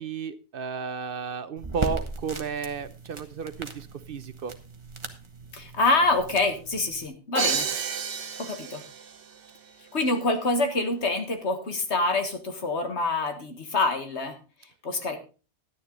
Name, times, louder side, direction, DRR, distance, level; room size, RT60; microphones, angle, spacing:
voice 1, 0.0-4.5, right 6 dB, 60° right, 13 dB, 0.8 m, -33 dB
sound 1, 1.6-7.1, right 3 dB, 25° right, 1.1 m, -38 dB
voice 2, 5.5-7.7 8.4-8.8 9.9-14.4 14.8-15.2, left 3 dB, 75° left, 6 dB, 1.9 m, -26 dB
Crash cymbal, 7.3-9.2, right 6 dB, 90° right, 1.3 m, -30 dB
11.0 x 9.9 x 3.9 m, 0.34 s
omnidirectional pair, 1.2 m